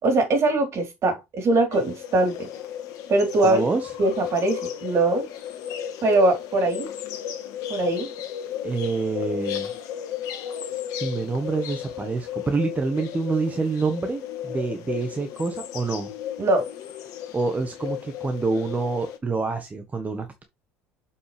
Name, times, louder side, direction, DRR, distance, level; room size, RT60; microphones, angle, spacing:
voice 1, 0.0-2.5 3.1-3.6 4.0-5.3 6.0-6.9 7.7-8.1 16.4-16.7, right 2 dB, 45° right, 4.0 m, -21 dB
sound 1, 1.7-19.2, left 9 dB, 65° left, 1.6 m, -34 dB
voice 2, 3.4-3.9 8.6-9.7 10.7-16.1 17.3-20.4, right 3 dB, 25° right, 1.4 m, -27 dB
7.1 x 5.7 x 3.5 m
hypercardioid pair, 70°, 6 cm